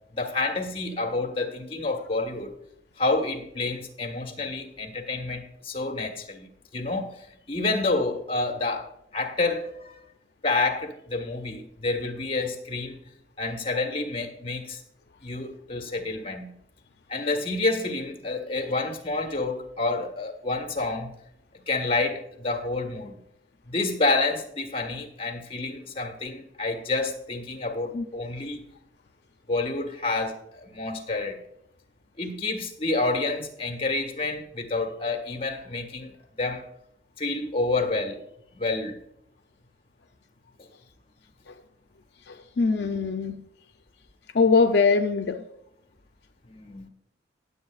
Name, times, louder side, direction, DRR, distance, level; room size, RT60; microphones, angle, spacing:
voice 1, 0.1-2.5 3.0-10.0 10.4-13.0 13.4-14.8 15.2-16.5 17.1-21.1 21.7-23.2 23.7-28.6 29.5-31.4 32.2-36.6 37.2-38.2 38.5-39.0 46.5-46.9, left 3 dB, 30° left, 3 dB, 1.5 m, -29 dB
voice 2, 42.3-43.4 44.3-45.4, left 4 dB, 65° left, 6 dB, 0.5 m, -22 dB
18.0 x 7.8 x 2.4 m, 0.76 s
head